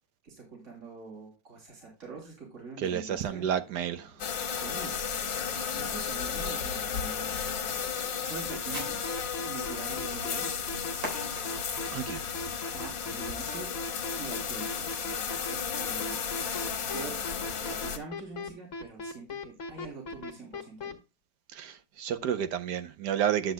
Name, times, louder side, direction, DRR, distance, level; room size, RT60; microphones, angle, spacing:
voice 1, 0.2-3.5 4.5-5.0 5.5-7.4 8.2-9.0 9.4-10.5 12.7-13.7 14.2-14.9 15.5-16.2 16.9-21.0, right 4 dB, 40° right, 3.5 m, -44 dB
voice 2, 2.8-4.1 11.9-12.2 21.5-23.5, right 9 dB, 70° right, 1.3 m, -30 dB
Fireworks, 2.8-13.5, right 1 dB, 90° right, 4.4 m, -49 dB
sound 1, 4.2-18.0, left 7 dB, 85° left, 1.8 m, -34 dB
sound 2, 8.5-20.9, left 2 dB, 50° left, 1.3 m, -38 dB
10.5 x 7.8 x 2.2 m
omnidirectional pair, 2.0 m